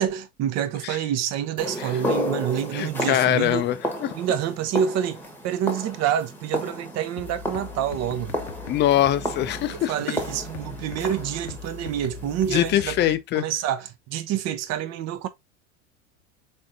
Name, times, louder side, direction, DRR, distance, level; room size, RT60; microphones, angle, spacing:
voice 1, 0.0-3.6 4.1-8.4 9.7-15.3, right 10 dB, 45° right, 0.8 m, -27 dB
sound 1, 1.6-12.8, left 1 dB, 5° left, 1.1 m, -33 dB
voice 2, 2.7-4.1 8.7-9.9 12.5-13.5, left 12 dB, 30° left, 0.5 m, -23 dB
sound 2, 7.2-13.2, left 6 dB, 85° left, 0.9 m, -40 dB
3.6 x 3.6 x 2.5 m
hypercardioid pair, 95°, 37 cm